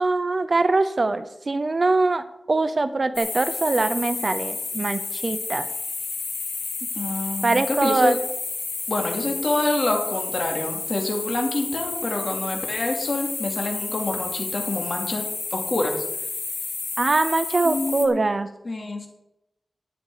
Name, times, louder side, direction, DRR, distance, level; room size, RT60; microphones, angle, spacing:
voice 1, 0.0-5.7 7.4-8.2 17.0-18.5, right 3 dB, 50° right, 12 dB, 0.8 m, -23 dB
sound 1, 3.2-18.1, left 4 dB, 85° left, 1.5 m, -31 dB
voice 2, 7.0-8.2 8.9-15.2 15.5-16.0 17.6-18.3 18.6-19.1, left 2 dB, 55° left, 2 dB, 2.8 m, -26 dB
12.5 x 9.2 x 4.9 m, 0.88 s
wide cardioid pair, 105°, 0 cm